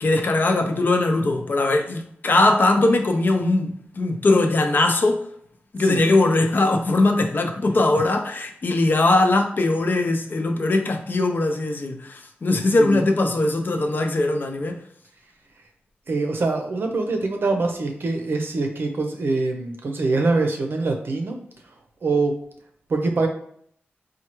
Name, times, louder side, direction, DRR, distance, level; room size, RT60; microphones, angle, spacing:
voice 1, 0.0-5.2 5.7-14.8, left 2 dB, 55° left, 0.5 m, -20 dB
voice 2, 16.1-21.4 22.0-22.4 22.9-23.3, right 3 dB, 65° right, 0.6 m, -24 dB
4.3 x 2.3 x 3.0 m
wide cardioid pair, 105°, 4 cm